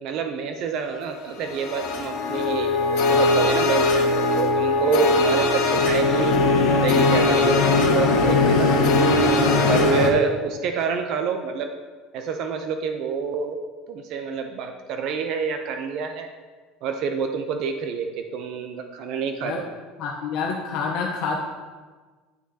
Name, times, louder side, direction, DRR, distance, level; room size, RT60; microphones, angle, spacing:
voice 1, 0.0-8.7 9.7-11.7 12.1-13.6 13.9-16.3 16.8-19.6, right 6 dB, 50° right, 5 dB, 0.5 m, -27 dB
sound 1, 1.5-10.1, left 3 dB, 85° left, 1.2 m, -20 dB
voice 2, 20.0-21.4, left 5 dB, 60° left, -1 dB, 0.8 m, -27 dB
9.3 x 6.2 x 2.8 m, 1.4 s
cardioid pair, 155°, 0 cm